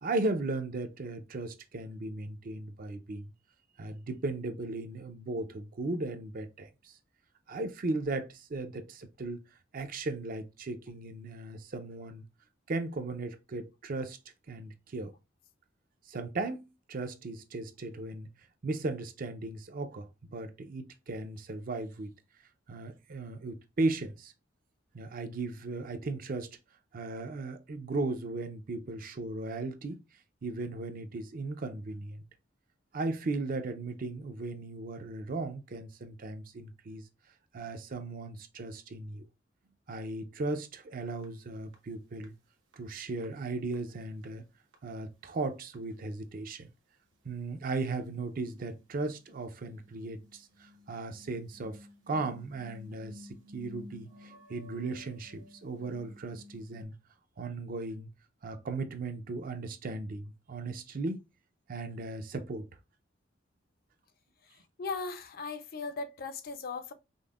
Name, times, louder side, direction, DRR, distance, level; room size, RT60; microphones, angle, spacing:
voice 1, 0.0-3.3 3.8-6.9 7.5-9.4 9.7-12.2 12.7-14.2 14.5-15.1 16.1-18.3 18.6-22.1 22.7-24.3 24.9-26.6 26.9-30.0 30.4-32.2 32.9-37.0 37.5-39.3 39.9-42.3 42.8-44.4 44.8-46.7 47.2-51.8 52.1-56.9 57.4-58.1 58.4-61.2 61.7-62.7, right 2 dB, 50° right, 0.5 m, -36 dB
sound 1, 41.2-41.3 41.7-41.8 42.2-42.3 42.7-42.8 43.2-43.3 43.7-43.8 44.1-44.4 44.7-44.8 45.2-45.3 45.7-45.8 46.1-46.2 48.1-48.2 48.6-56.8, left 2 dB, 80° right, 0.9 m, -53 dB
voice 2, 64.8-66.9, left 4 dB, 50° left, 0.5 m, -37 dB
5.2 x 2.1 x 2.3 m
head